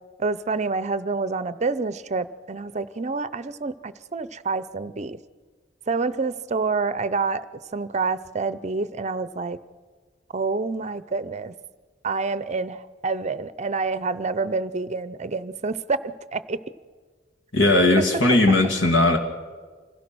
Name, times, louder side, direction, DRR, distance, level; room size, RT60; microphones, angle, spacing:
voice 1, 0.2-5.2 5.9-7.5 7.7-9.6 10.3-11.5 12.0-16.6, right 4 dB, 40° right, 15 dB, 0.6 m, -27 dB
voice 2, 17.5-19.2, left 2 dB, 75° left, 3 dB, 2.5 m, -18 dB
26.0 x 16.5 x 6.2 m, 1.5 s
head